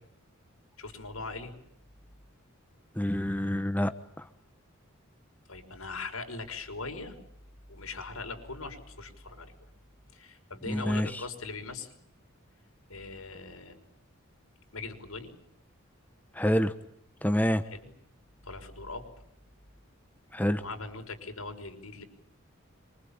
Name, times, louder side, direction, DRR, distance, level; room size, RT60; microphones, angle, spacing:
voice 1, 0.8-1.5 5.5-7.2 7.7-9.5 10.1-12.0 12.9-13.8 14.7-15.3 17.7-17.8 18.4-19.0 20.5-22.0, left 3 dB, 85° left, 5 dB, 5.7 m, -40 dB
voice 2, 2.9-3.9 4.2-4.3 10.7-11.2 16.3-16.7 17.2-17.6 20.3-20.6, equal, 10° left, 10 dB, 1.1 m, -27 dB
27.0 x 25.0 x 8.9 m, 0.73 s
head